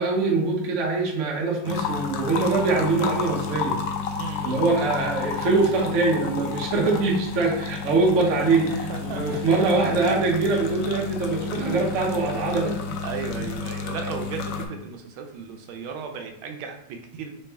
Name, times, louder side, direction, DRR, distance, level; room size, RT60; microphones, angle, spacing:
voice 1, 0.0-3.8 4.2-13.0 13.4-13.5, right 3 dB, 65° right, -1 dB, 0.7 m, -23 dB
sound 1, 1.7-14.7, left 6 dB, 75° left, 1.1 m, -31 dB
voice 2, 4.2-4.6 8.3-8.4 8.7-9.2 9.9-10.1 11.5-11.9 13.0-17.4, right 5 dB, 80° right, 4 dB, 1.4 m, -35 dB
3.4 x 3.1 x 3.3 m, 0.73 s
omnidirectional pair, 2.3 m